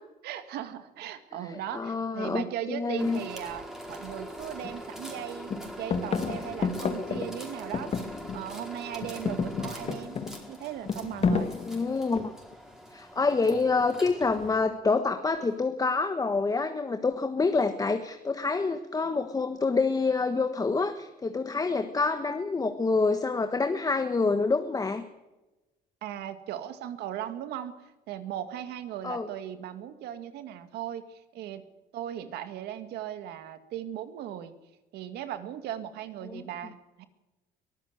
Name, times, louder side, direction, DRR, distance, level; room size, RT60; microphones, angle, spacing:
voice 1, 0.2-10.2 10.5-11.6 26.0-27.7 28.1-31.6 31.9-34.5 34.9-37.1, right 11 dB, 80° right, 10 dB, 2.1 m, -38 dB
voice 2, 1.5-3.2 11.6-12.3 12.9-25.0 29.0-29.3 36.2-36.4, left 4 dB, 20° left, 7 dB, 1.4 m, -27 dB
sound 1, 3.0-14.6, equal, 5° right, 4.7 m, -43 dB
sound 2, 4.1-4.2 4.6-5.2 5.5-8.6 8.9-12.5 13.5-14.0, left 5 dB, 40° left, 1.8 m, -32 dB
23.0 x 14.5 x 8.1 m, 1.1 s
cardioid pair, 115°, 17 cm